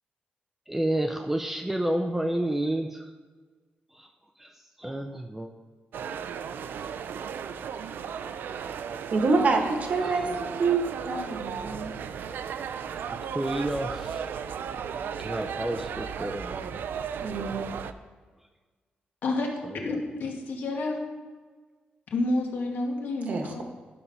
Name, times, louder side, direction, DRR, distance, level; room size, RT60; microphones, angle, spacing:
voice 1, 0.7-3.1 3.9-4.1 4.4-5.5 10.0-10.4 13.2-14.2 15.2-16.8 19.6-20.0, right 1 dB, 10° right, 5 dB, 0.4 m, -31 dB
sound 1, 5.9-17.9, right 7 dB, 80° right, 0.4 m, -35 dB
voice 2, 9.1-10.3 10.6-11.9 17.2-17.7 23.3-23.6, right 4 dB, 50° right, 4 dB, 1.1 m, -26 dB
voice 3, 19.8-21.0 22.1-23.6, left 2 dB, 75° left, 1 dB, 1.6 m, -29 dB
11.0 x 5.5 x 5.6 m, 1.4 s
wide cardioid pair, 175°, 3 cm